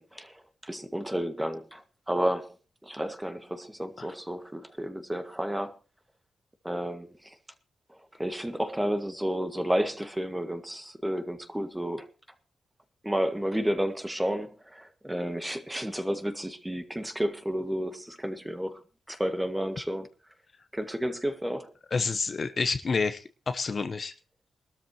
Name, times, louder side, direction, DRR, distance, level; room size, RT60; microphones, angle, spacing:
voice 1, 0.0-2.6 2.8-5.8 6.6-7.4 8.2-12.1 13.0-18.8 19.1-20.1 20.7-21.7, equal, 10° right, 1.8 m, -31 dB
voice 2, 21.9-24.1, left 4 dB, 45° left, 1.1 m, -29 dB
22.0 x 13.0 x 3.0 m
wide cardioid pair, 110°, 0 cm